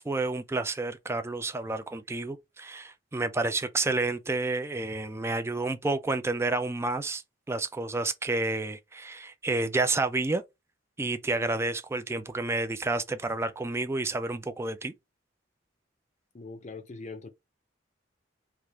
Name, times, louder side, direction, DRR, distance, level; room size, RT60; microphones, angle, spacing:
voice 1, 0.0-7.2 7.5-10.4 11.0-14.9, right 2 dB, 15° right, 0.3 m, -30 dB
voice 2, 16.3-17.3, left 3 dB, 40° left, 0.6 m, -41 dB
3.4 x 2.4 x 2.9 m
head